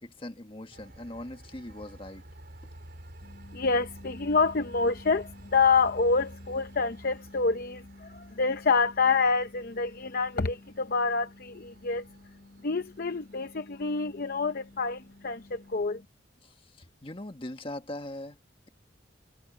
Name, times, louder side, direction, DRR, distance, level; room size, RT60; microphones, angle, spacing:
voice 1, 0.0-2.2 16.4-18.4, left 1 dB, 30° left, 1.6 m, -41 dB
Train, 0.7-15.9, right 1 dB, 55° right, 4.3 m, -51 dB
voice 2, 3.3-12.4 12.6-16.0, left 4 dB, 50° left, 0.7 m, -27 dB
head